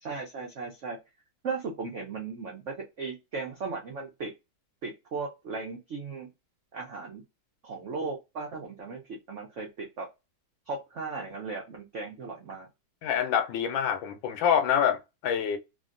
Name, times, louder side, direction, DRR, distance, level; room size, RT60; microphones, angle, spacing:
voice 1, 0.0-1.0 1.4-2.6 3.0-4.3 4.8-6.3 6.7-7.2 7.6-9.0 9.3-10.1 10.7-12.7, right 4 dB, 85° right, 0.6 m, -36 dB
voice 2, 13.0-15.6, left 8 dB, 75° left, 1.2 m, -26 dB
3.6 x 2.0 x 2.4 m
omnidirectional pair, 2.3 m